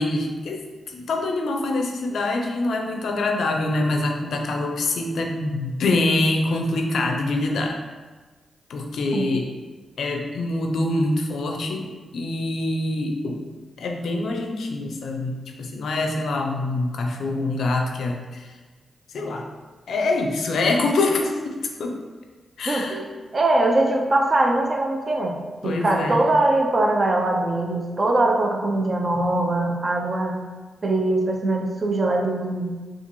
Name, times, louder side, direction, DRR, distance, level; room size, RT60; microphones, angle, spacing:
voice 1, 0.0-7.8 8.7-9.5 10.0-13.4 13.8-18.5 19.1-19.5 19.9-22.0 22.6-23.0 25.6-26.3, left 2 dB, 80° left, 2 dB, 0.4 m, -25 dB
voice 2, 22.7-23.0 23.3-30.4 30.8-32.8, right 2 dB, 40° right, 3 dB, 0.5 m, -22 dB
4.1 x 2.3 x 3.0 m, 1.3 s
cardioid pair, 55°, 0 cm